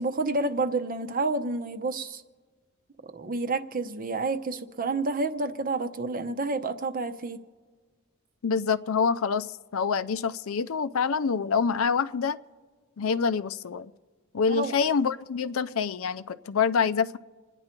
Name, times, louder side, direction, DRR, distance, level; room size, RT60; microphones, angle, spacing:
voice 1, 0.0-2.2 3.1-7.4 14.5-14.7, right 3 dB, 40° right, 8 dB, 0.8 m, -29 dB
voice 2, 8.4-9.5 9.7-12.4 13.0-13.9 14.3-17.2, left 5 dB, 70° left, 15 dB, 0.5 m, -26 dB
28.0 x 9.9 x 4.5 m, 1.4 s
head